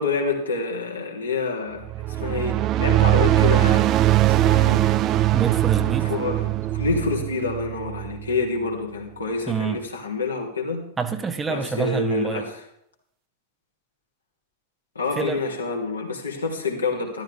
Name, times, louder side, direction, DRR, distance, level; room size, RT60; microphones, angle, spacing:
voice 1, 0.0-3.9 4.3-4.8 6.0-6.4 6.7-10.8 11.5-12.5 14.9-17.2, left 4 dB, 75° left, 0 dB, 2.9 m, -27 dB
sound 1, 1.8-8.4, right 14 dB, 35° right, 0.6 m, -21 dB
voice 2, 5.3-6.1 9.5-9.8 11.0-12.5 15.1-15.4, right 6 dB, 15° right, 8 dB, 1.1 m, -26 dB
13.5 x 13.5 x 3.5 m, 0.67 s
figure-of-eight pair, 90°, 0 cm